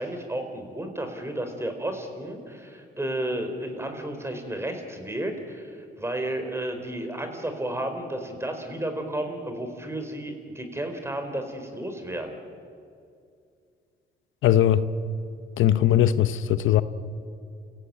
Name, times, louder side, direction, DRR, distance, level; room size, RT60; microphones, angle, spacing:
voice 1, 0.0-12.4, right 1 dB, 15° right, 4.4 m, -32 dB
voice 2, 14.4-14.8 15.6-16.8, left 11 dB, 80° left, 0.9 m, -20 dB
29.0 x 16.5 x 8.9 m
cardioid pair, 90°, 20 cm